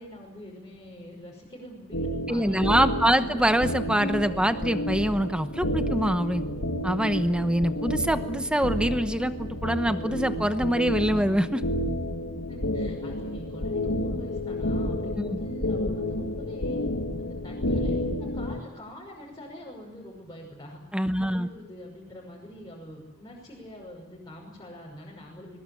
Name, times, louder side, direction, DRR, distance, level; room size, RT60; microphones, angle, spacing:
voice 1, 0.0-3.2 12.2-16.8 17.2-18.0 18.3-20.8 21.1-25.6, equal, 20° left, -4 dB, 6.1 m, -45 dB
sound 1, 1.9-18.6, left 1 dB, 80° left, 2.1 m, -30 dB
voice 2, 2.3-6.4 6.8-11.6 15.2-15.3 20.9-21.5, equal, 5° right, 9 dB, 0.9 m, -24 dB
22.0 x 21.0 x 10.0 m, 1.0 s
head